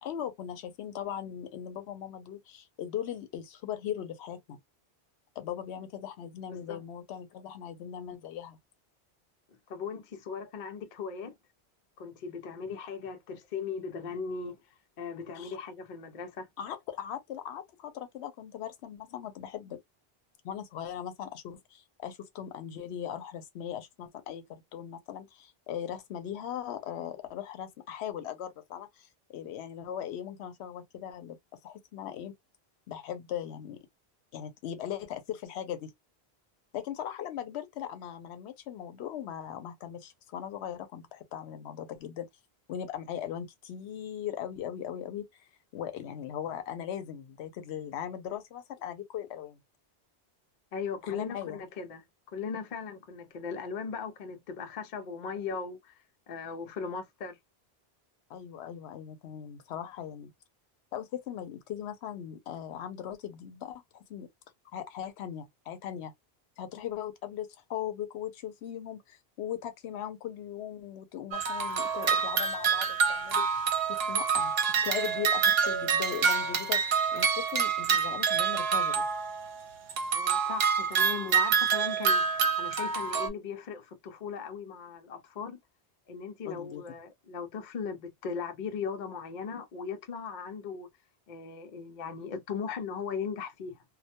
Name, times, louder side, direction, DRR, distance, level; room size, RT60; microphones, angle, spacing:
voice 1, 0.0-4.6 5.4-8.6 15.3-15.6 16.6-19.8 20.4-31.4 31.6-32.3 32.9-33.8 34.3-35.9 36.7-42.3 42.7-49.6 51.1-51.6 58.3-60.3 60.9-64.3 64.7-66.1 66.6-73.7 74.1-76.8 77.1-79.1 86.4-86.8, left 10 dB, 85° left, 0.8 m, -39 dB
voice 2, 9.7-11.3 12.0-14.6 15.0-16.5 50.7-55.9 56.3-57.4 80.1-85.6 86.1-90.9 91.3-93.8, left 6 dB, 55° left, 0.6 m, -38 dB
sound 1, 71.3-79.5 79.9-83.3, right 6 dB, 75° right, 0.9 m, -27 dB
2.2 x 2.1 x 2.7 m
omnidirectional pair, 1.1 m